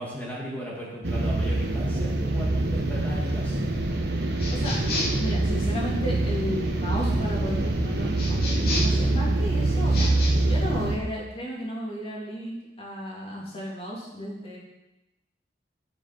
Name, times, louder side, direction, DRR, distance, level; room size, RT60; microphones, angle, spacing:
voice 1, 0.0-3.6, equal, 10° left, -5 dB, 2.3 m, -36 dB
sound 1, 1.0-11.0, right 2 dB, 65° right, 1.4 m, -25 dB
sound 2, 4.4-5.3 8.2-9.0 9.8-10.3, left 1 dB, 55° left, 2.6 m, -31 dB
voice 2, 4.5-4.8 5.2-10.1 10.5-14.6, equal, 35° left, -4 dB, 3.1 m, -34 dB
9.9 x 7.0 x 6.0 m, 0.96 s
head